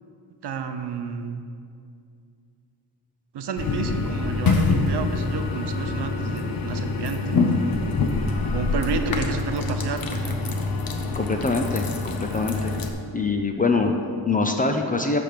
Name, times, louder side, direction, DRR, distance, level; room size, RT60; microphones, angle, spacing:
voice 1, 0.4-1.4 3.3-7.6 8.5-10.6, right 5 dB, 65° right, 7 dB, 0.7 m, -31 dB
sound 1, 3.6-12.9, left 3 dB, 55° left, 0.8 m, -25 dB
voice 2, 11.1-12.7 13.1-15.2, left 3 dB, 20° left, 4 dB, 0.4 m, -24 dB
10.5 x 3.5 x 6.6 m, 2.3 s
wide cardioid pair, 155°, 43 cm